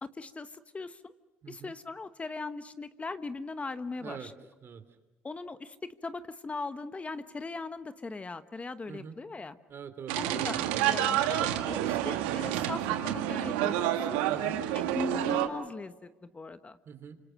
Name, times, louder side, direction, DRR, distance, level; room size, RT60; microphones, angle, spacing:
voice 1, 0.0-1.1 1.5-4.3 5.2-9.6 10.2-14.2 14.7-16.8, left 3 dB, 25° left, 11 dB, 1.2 m, -39 dB
voice 2, 4.0-4.3 4.6-4.8 8.9-9.2 9.7-10.6 14.3-14.7 16.8-17.2, right 7 dB, 50° right, 10 dB, 2.9 m, -44 dB
sound 1, 10.1-15.5, right 12 dB, 85° right, 1.6 m, -29 dB
28.5 x 26.0 x 6.4 m, 1.2 s
supercardioid pair, 65°, 5 cm